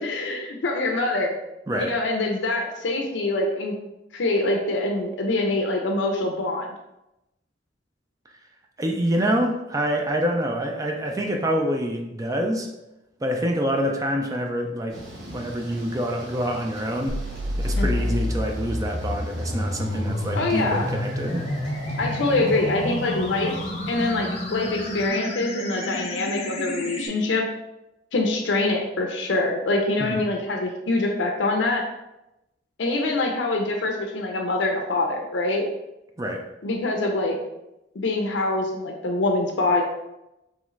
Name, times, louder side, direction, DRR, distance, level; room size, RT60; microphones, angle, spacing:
voice 1, 0.0-1.3 1.8-3.8 4.1-6.7 17.8-18.1 20.3-20.8 22.0-23.6 23.9-27.5 28.1-31.9 32.8-35.6 36.6-37.4 37.9-39.8, left 2 dB, 80° left, 2 dB, 0.5 m, -24 dB
voice 2, 8.8-12.7 13.2-15.0 15.3-17.2 17.6-21.4 30.0-30.2 36.2-36.4, equal, 20° right, 2 dB, 0.4 m, -26 dB
Thunder / Rain, 14.9-25.1, right 1 dB, 80° right, 1.2 m, -41 dB
sound 1, 17.1-27.1, left 1 dB, 35° left, 0.5 m, -29 dB
3.6 x 3.0 x 3.1 m, 0.92 s
head